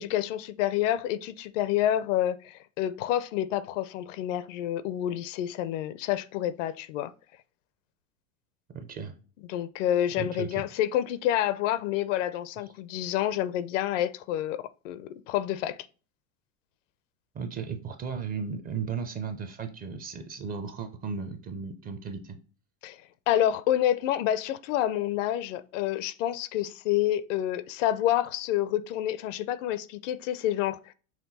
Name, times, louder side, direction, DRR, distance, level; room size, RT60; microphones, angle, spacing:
voice 1, 0.0-7.1 9.5-15.8 22.8-23.0 23.3-30.9, left 12 dB, 60° left, 0.5 m, -28 dB
voice 2, 8.7-9.2 10.2-10.6 17.3-22.4, right 6 dB, 20° right, 0.5 m, -35 dB
5.9 x 2.2 x 4.0 m
hypercardioid pair, 120°, 43 cm